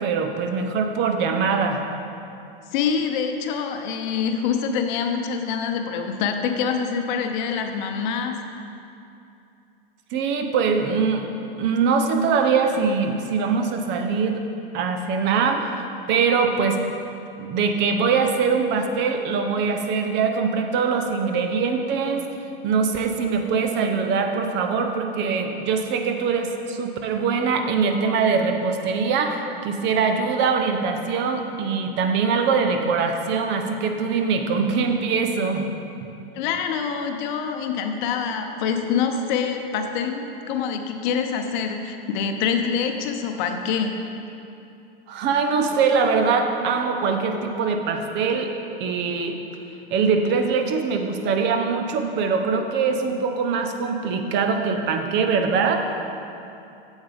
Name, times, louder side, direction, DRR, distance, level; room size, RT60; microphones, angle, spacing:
voice 1, 0.0-1.8 10.1-11.2 11.6-14.4 14.7-15.7 16.1-16.8 17.4-22.2 22.6-35.7 45.1-48.5 48.8-49.4 49.9-55.8, right 5 dB, 40° right, 5 dB, 0.7 m, -22 dB
voice 2, 2.7-8.4 36.3-43.9, left 6 dB, 55° left, 5 dB, 0.8 m, -25 dB
8.7 x 7.3 x 3.5 m, 2.7 s
hypercardioid pair, 105°, 29 cm